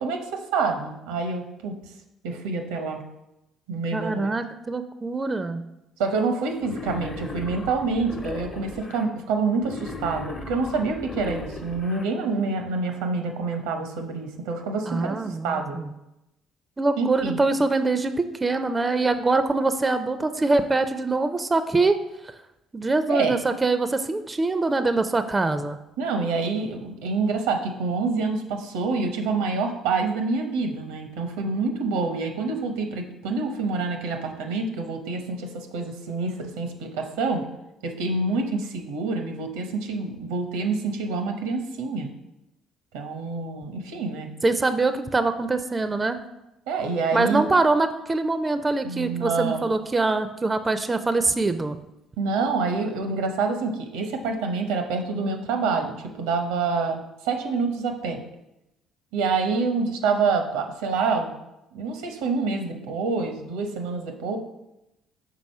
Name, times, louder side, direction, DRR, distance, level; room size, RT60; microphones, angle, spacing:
voice 1, 0.0-1.7 2.2-3.0 3.7-4.3 6.0-15.8 17.0-17.4 23.1-23.4 26.0-37.4 37.8-42.1 42.9-44.3 46.7-47.4 48.8-49.7 52.2-58.2 59.1-61.3 61.7-64.4, right 4 dB, 90° right, 4 dB, 0.8 m, -27 dB
voice 2, 3.9-5.6 14.9-15.9 16.8-22.0 22.7-25.8 44.4-46.2 47.1-51.8, right 3 dB, 25° right, 10 dB, 0.4 m, -24 dB
Wild animals, 6.6-9.1 9.6-12.1, left 3 dB, 40° left, 1.0 m, -37 dB
4.8 x 3.9 x 5.5 m, 0.90 s
supercardioid pair, 70°, 0 cm